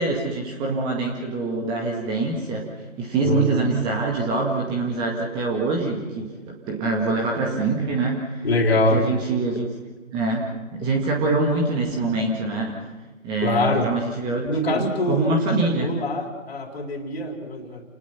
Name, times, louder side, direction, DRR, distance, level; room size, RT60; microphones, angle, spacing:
voice 1, 0.0-2.6 3.0-8.4 8.9-9.7 10.1-12.8 13.2-15.9, right 3 dB, 10° right, 0 dB, 1.9 m, -25 dB
voice 2, 8.4-9.1 13.4-13.9 14.5-17.8, left 1 dB, 50° left, 4 dB, 3.9 m, -24 dB
29.0 x 20.5 x 5.8 m, 1.2 s
figure-of-eight pair, 145°, 40 cm